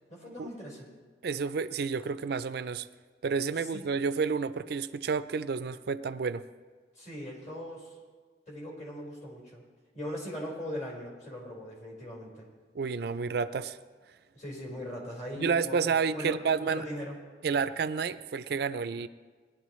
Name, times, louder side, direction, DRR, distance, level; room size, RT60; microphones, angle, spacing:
voice 1, 0.1-0.9 3.6-3.8 6.9-8.0 8.5-9.6 9.9-12.5 14.3-17.1, equal, 45° left, -3 dB, 4.5 m, -40 dB
voice 2, 1.2-2.9 3.2-6.4 12.7-13.8 15.4-16.9 17.4-19.1, right 5 dB, 60° right, 13 dB, 0.4 m, -30 dB
20.5 x 11.5 x 3.1 m, 1.5 s
head